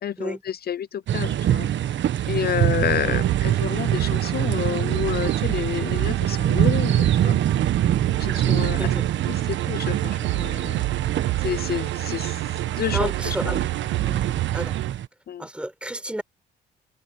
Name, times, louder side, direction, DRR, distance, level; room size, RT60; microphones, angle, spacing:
voice 1, 0.0-1.7 2.3-7.4 8.2-8.9 9.3-10.8 11.4-12.4 12.7-13.6 15.3-15.5, left 9 dB, 50° left, 0.7 m, -29 dB
sound 1, 1.1-15.1, right 11 dB, 65° right, 1.4 m, -24 dB
sound 2, 3.0-14.9, right 19 dB, 90° right, 0.4 m, -29 dB
voice 2, 8.3-9.1 12.9-13.6 14.0-14.2 14.5-14.7 15.4-16.2, right 1 dB, 5° right, 4.6 m, -31 dB
cardioid pair, 90°, 20 cm